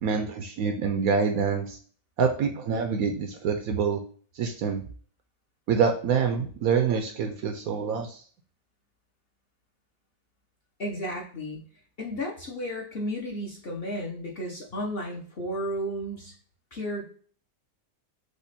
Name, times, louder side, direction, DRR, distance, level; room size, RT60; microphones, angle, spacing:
voice 1, 0.0-1.8 2.2-4.0 4.3-4.8 5.7-8.2, right 6 dB, 70° right, 5 dB, 0.9 m, -26 dB
voice 2, 10.8-11.6 12.0-16.3 16.7-17.0, equal, 45° left, -2 dB, 0.9 m, -33 dB
5.1 x 2.4 x 4.1 m, 0.44 s
omnidirectional pair, 1.8 m